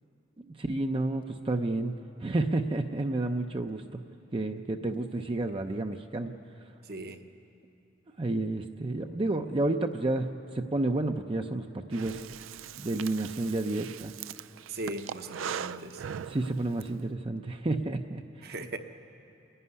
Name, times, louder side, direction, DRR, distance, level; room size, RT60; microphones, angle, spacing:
voice 1, 0.6-3.8 4.3-6.3 8.2-12.2 12.8-14.1 16.2-18.5, right 2 dB, 25° right, 5 dB, 0.6 m, -30 dB
voice 2, 6.8-7.2 14.7-16.0 18.4-18.8, right 2 dB, 55° right, 6 dB, 1.0 m, -38 dB
Breathing, 11.9-16.9, right 8 dB, 90° right, 0.4 m, -40 dB
28.5 x 11.0 x 9.6 m, 2.8 s
head